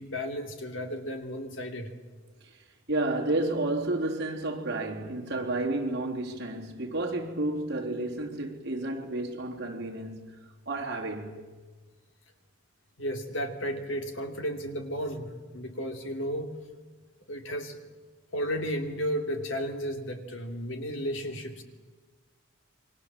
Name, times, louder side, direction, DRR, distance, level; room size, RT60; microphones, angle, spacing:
voice 1, 0.0-1.9 13.0-16.6 17.3-17.8 18.3-21.6, equal, 65° left, 3.0 m, -33 dB
voice 2, 2.9-10.3 10.7-11.4, right 2 dB, 50° right, 3.6 m, -31 dB
28.5 x 23.5 x 7.6 m
head